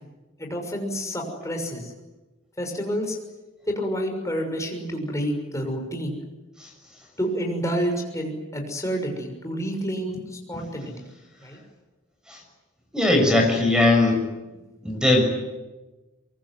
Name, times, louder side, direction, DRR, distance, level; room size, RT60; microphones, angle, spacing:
voice 1, 0.4-1.9 2.6-3.2 3.7-6.2 7.2-10.9 11.4-11.6, equal, 15° left, 2 dB, 6.4 m, -29 dB
voice 2, 12.9-14.2 14.8-15.2, left 2 dB, 5° right, 3 dB, 6.7 m, -19 dB
24.0 x 24.0 x 9.5 m, 1.1 s
head